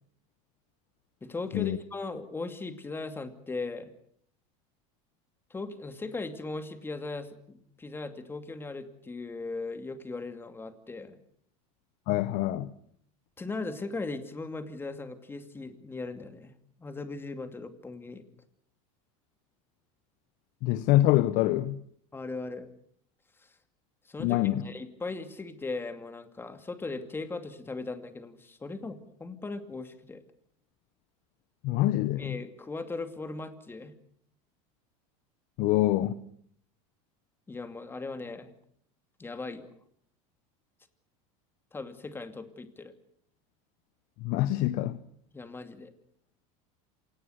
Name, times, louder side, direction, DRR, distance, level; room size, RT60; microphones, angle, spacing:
voice 1, 1.2-3.9 5.5-11.2 13.4-16.5 16.8-18.2 22.1-22.7 23.4-23.5 24.1-30.2 32.2-33.9 37.5-38.5 39.2-39.7 41.7-42.9 45.3-45.9, left 3 dB, 15° left, 2.6 m, -38 dB
voice 2, 12.1-12.7 20.6-21.8 24.2-24.6 31.6-32.4 35.6-36.2 44.2-45.0, left 15 dB, 55° left, 1.1 m, -25 dB
27.0 x 18.5 x 8.2 m
supercardioid pair, 130°, 17 cm